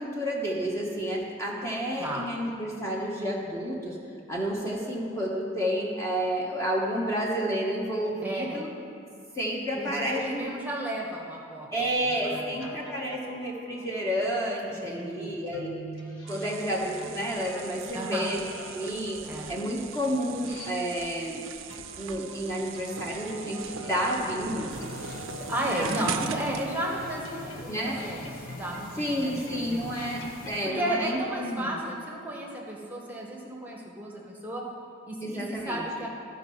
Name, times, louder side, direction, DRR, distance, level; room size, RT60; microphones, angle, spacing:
voice 1, 0.0-4.0 4.3-8.7 9.3-10.5 11.7-15.8 16.3-18.4 18.7-19.2 19.5-21.4 22.0-24.7 25.8-26.1 27.7-28.0 29.0-31.7 35.2-35.8, equal, 15° left, -3 dB, 1.0 m, -30 dB
voice 2, 8.2-8.6 9.8-12.7 14.6-15.3 17.9-18.3 19.2-19.5 25.4-29.9 30.6-34.6 35.1-36.1, right 1 dB, 10° right, -2 dB, 1.1 m, -34 dB
sound 1, 11.7-14.3 15.5-21.2 21.7-30.9, equal, 75° left, 1.1 m, -45 dB
sound 2, 16.3-26.7, right 8 dB, 85° right, 0.5 m, -41 dB
sound 3, 24.7-30.6, left 2 dB, 45° left, 0.9 m, -43 dB
13.5 x 5.4 x 5.4 m, 2.5 s
head